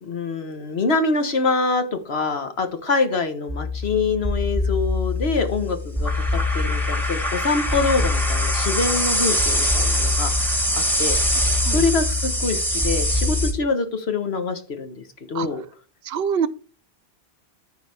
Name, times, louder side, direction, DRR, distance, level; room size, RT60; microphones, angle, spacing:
voice 1, 0.0-15.6, left 3 dB, 70° left, 1.5 m, -25 dB
sound 1, 3.5-13.5, left 1 dB, ahead, 1.5 m, -22 dB
voice 2, 16.0-16.5, right 7 dB, 70° right, 0.8 m, -24 dB
14.0 x 4.8 x 3.5 m
omnidirectional pair, 1.1 m